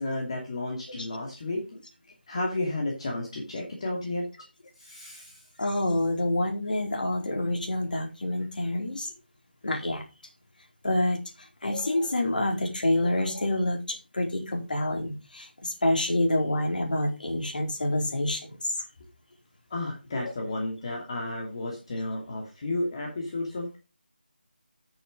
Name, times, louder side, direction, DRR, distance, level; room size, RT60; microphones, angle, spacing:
voice 1, 0.0-1.6 2.3-4.3 4.8-5.4 19.7-23.8, left 2 dB, 35° left, 0 dB, 2.5 m, -32 dB
voice 2, 5.6-9.1 9.6-10.0 10.8-11.2 11.6-18.7 20.2-20.3, left 1 dB, 55° left, 2 dB, 4.3 m, -27 dB
10.0 x 7.1 x 5.3 m, 0.30 s
figure-of-eight pair, 160°, 6 cm